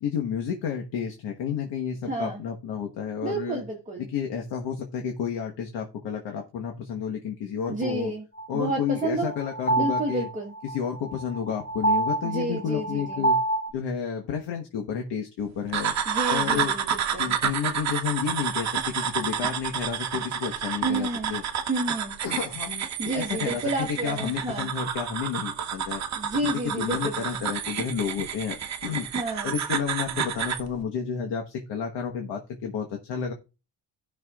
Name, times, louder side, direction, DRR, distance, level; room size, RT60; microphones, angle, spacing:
voice 1, 0.0-3.6 4.0-8.1 8.5-10.3 10.6-13.4 13.7-15.9 16.3-16.7 17.1-21.4 22.2-26.0 26.4-29.1 29.4-33.3, left 7 dB, 70° left, 1.4 m, -31 dB
voice 2, 2.1-2.4 3.2-4.1 7.7-8.2 8.5-9.3 9.8-10.5 12.2-13.3 16.1-17.3 20.8-21.4 21.7-22.2 23.0-24.7 26.2-27.4 29.1-29.5, right 2 dB, 20° right, 1.2 m, -30 dB
sound 1, 8.4-13.7, right 2 dB, 20° left, 1.2 m, -27 dB
sound 2, 15.7-30.7, right 8 dB, 40° right, 1.0 m, -30 dB
17.0 x 6.0 x 2.4 m
cardioid pair, 170°, 42 cm